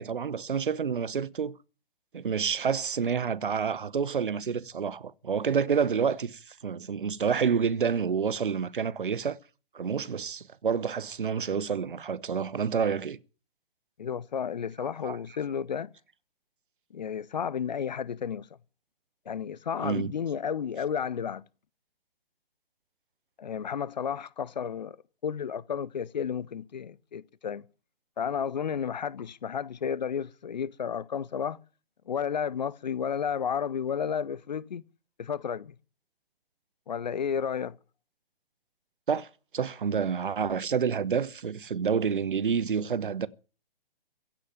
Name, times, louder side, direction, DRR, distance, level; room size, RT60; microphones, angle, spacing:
voice 1, 0.0-1.6 2.1-9.4 9.7-13.2 15.0-15.2 19.8-20.1 39.1-39.3 39.5-43.3, right 6 dB, 55° right, 1.0 m, -28 dB
voice 2, 14.0-15.9 16.9-18.5 19.3-21.4 23.4-25.0 25.2-27.6 28.2-31.6 32.1-34.8 35.2-35.7 36.9-37.8, left 7 dB, 45° left, 0.7 m, -32 dB
16.0 x 8.7 x 9.3 m
figure-of-eight pair, 135°, 30 cm